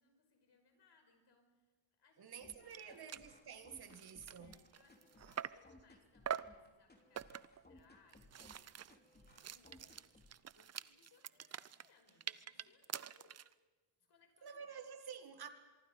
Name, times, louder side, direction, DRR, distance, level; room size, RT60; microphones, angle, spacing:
voice 1, 0.0-3.2 4.4-8.6 9.0-10.1 10.5-13.5 14.0-14.7, left 5 dB, 55° left, 5.7 m, -71 dB
voice 2, 2.2-4.6 14.4-15.5, right 7 dB, 50° right, 1.8 m, -50 dB
sound 1, 2.4-10.4, left 2 dB, 20° left, 3.1 m, -63 dB
sound 2, 2.4-2.5 2.7-2.8 3.1-3.3 3.8-5.7 6.3-6.6 7.2-7.6 8.1-13.5, right 8 dB, 35° right, 0.6 m, -46 dB
24.5 x 23.5 x 5.4 m
cardioid pair, 100°, 48 cm